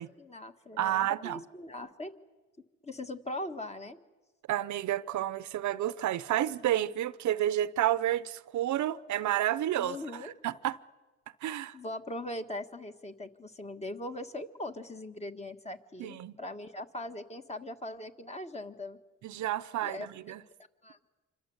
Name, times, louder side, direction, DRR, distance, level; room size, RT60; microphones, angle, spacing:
voice 1, 0.0-2.2 2.8-4.0 9.8-10.3 11.7-19.0 19.8-20.1 20.8-21.0, left 1 dB, 20° left, 1.8 m, -40 dB
voice 2, 0.8-1.4 4.5-10.8 11.4-11.8 16.0-16.3 19.2-20.4, right 12 dB, 70° right, 0.8 m, -30 dB
27.0 x 25.5 x 8.0 m
cardioid pair, 90°, 30 cm